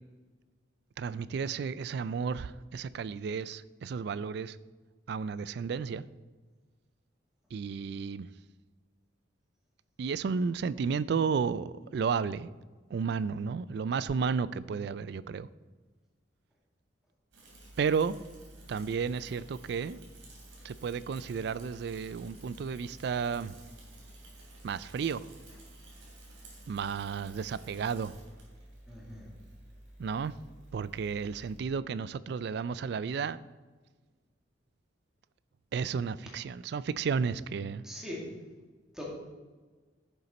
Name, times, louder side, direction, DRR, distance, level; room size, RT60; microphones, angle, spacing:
voice 1, 1.0-4.6 5.1-6.0 7.5-8.3 10.0-12.5 12.9-15.5 17.8-18.1 18.7-20.0 20.6-23.5 24.6-25.2 26.7-28.1 30.0-30.3 30.7-33.4 35.7-37.8, right 5 dB, 60° right, 18 dB, 0.3 m, -32 dB
Bicycle / Mechanisms, 17.3-31.6, right 1 dB, 75° right, 2.9 m, -52 dB
voice 2, 28.9-29.3 37.8-38.2 38.9-39.0, equal, 5° right, -4 dB, 2.1 m, -41 dB
10.5 x 6.9 x 4.2 m, 1.3 s
head